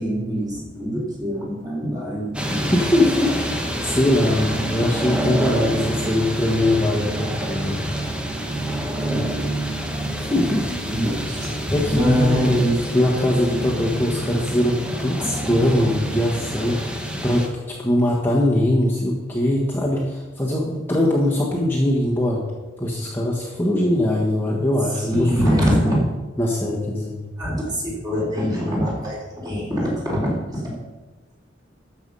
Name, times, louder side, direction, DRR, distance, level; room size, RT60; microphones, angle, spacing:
voice 1, 0.0-4.5 9.1-9.3 10.8-13.0 15.2-15.3 24.9-26.0 27.4-29.2 29.4-30.6, equal, 20° right, -4 dB, 3.8 m, -24 dB
sound 1, 2.3-17.5, right 1 dB, 5° right, 1.1 m, -27 dB
voice 2, 2.7-7.8 10.2-10.7 11.7-12.6 12.9-22.4 22.8-25.6 26.4-27.2, left 1 dB, 10° left, -4 dB, 1.4 m, -21 dB
12.5 x 7.1 x 5.5 m, 1.2 s
head